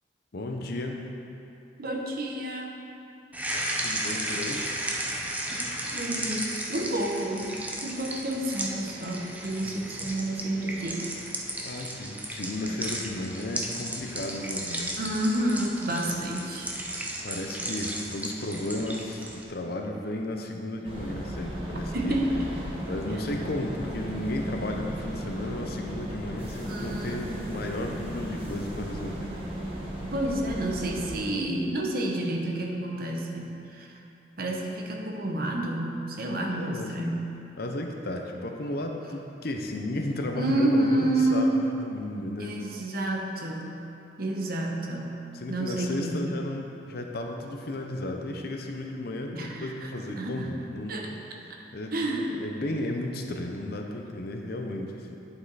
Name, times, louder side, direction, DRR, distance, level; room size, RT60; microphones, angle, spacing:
voice 1, 0.3-1.1 3.8-4.7 9.6-9.8 11.6-15.0 16.8-16.9 17.2-19.2 19.5-22.2 22.9-29.3 36.5-36.9 37.6-42.6 45.3-51.0 51.7-51.9 52.4-55.2, left 1 dB, 60° left, 2 dB, 0.7 m, -34 dB
voice 2, 1.8-2.7 5.9-7.6 7.8-11.1 15.0-16.8 21.9-22.6 26.7-27.2 30.1-33.9 34.4-37.3 40.3-41.5 42.4-43.9 44.2-45.2 45.5-46.4 49.3-49.9 50.2-50.5 50.9-51.5 51.9-52.3, right 1 dB, 60° right, 0 dB, 1.0 m, -29 dB
sound 1, 3.3-19.4, right 1 dB, 10° right, 0.7 m, -34 dB
sound 2, 20.8-31.2, right 1 dB, 35° right, 1.4 m, -36 dB
10.0 x 5.6 x 4.0 m, 2.7 s
head